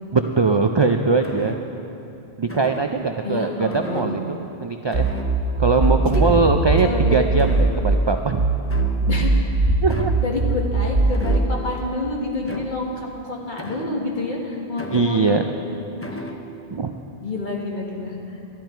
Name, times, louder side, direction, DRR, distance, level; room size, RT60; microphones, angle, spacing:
voice 1, 0.1-1.6 2.4-5.1 5.6-8.4 9.8-10.1 14.9-15.4 16.7-16.9, right 4 dB, 45° right, 5 dB, 0.3 m, -21 dB
sound 1, 1.2-1.9 2.5-3.1 3.7-4.6 4.9-5.6 6.1-7.0 7.4-8.2 8.7-9.3 9.9-10.4 11.1-11.8 12.4-13.0 13.6-14.3 14.8-15.5 16.0-16.5, equal, 15° left, 0.6 m, -36 dB
voice 2, 3.2-4.2 6.0-6.1 6.8-7.2 9.0-9.7 10.2-15.4 16.1-16.3 17.2-18.4, left 2 dB, 50° left, -2 dB, 1.7 m, -28 dB
sound 2, 4.9-8.0 8.4-11.4, right 3 dB, 75° right, 1.7 m, -20 dB
13.0 x 12.5 x 4.5 m, 2.8 s
omnidirectional pair, 1.0 m